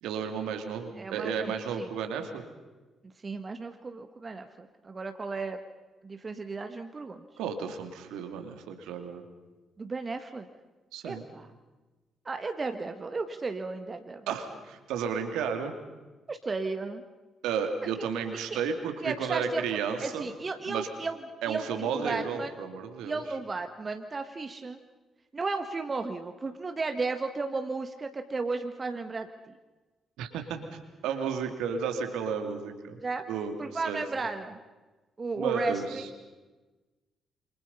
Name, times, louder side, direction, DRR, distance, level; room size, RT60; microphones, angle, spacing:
voice 1, 0.0-2.4 7.4-9.2 10.9-11.2 14.3-15.7 17.4-20.3 20.7-20.9 21.4-23.2 30.2-30.6 31.0-33.0 33.3-34.0 35.4-36.1, right 6 dB, 70° right, 6 dB, 2.5 m, -32 dB
voice 2, 1.0-1.9 3.2-5.6 6.0-7.2 9.8-10.5 11.0-11.5 12.2-14.3 16.3-17.0 18.5-18.6 19.0-19.6 20.0-21.1 21.5-22.5 23.0-24.8 25.3-29.5 33.0-33.2 33.6-34.6 35.2-36.0, right 3 dB, 35° right, 7 dB, 1.6 m, -34 dB
28.5 x 26.0 x 5.6 m, 1.2 s
figure-of-eight pair, 40°, 0 cm